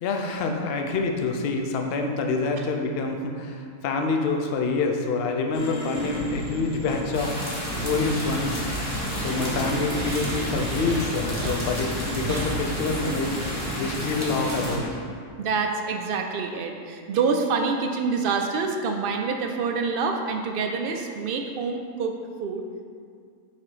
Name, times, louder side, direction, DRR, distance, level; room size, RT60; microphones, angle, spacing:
voice 1, 0.0-7.3 7.8-8.6 9.2-13.4 13.8-14.9, left 3 dB, 55° left, 3 dB, 0.7 m, -27 dB
Espresso Machine, 5.5-13.8, equal, 80° left, 1.2 m, -39 dB
sound 1, 5.9-14.9, right 1 dB, 85° right, 1.5 m, -32 dB
sound 2, 7.1-14.8, equal, 10° left, 1.2 m, -33 dB
voice 2, 15.4-22.1 22.4-22.7, right 4 dB, 65° right, 3 dB, 0.5 m, -26 dB
5.8 x 4.5 x 4.9 m, 2.2 s
omnidirectional pair, 1.5 m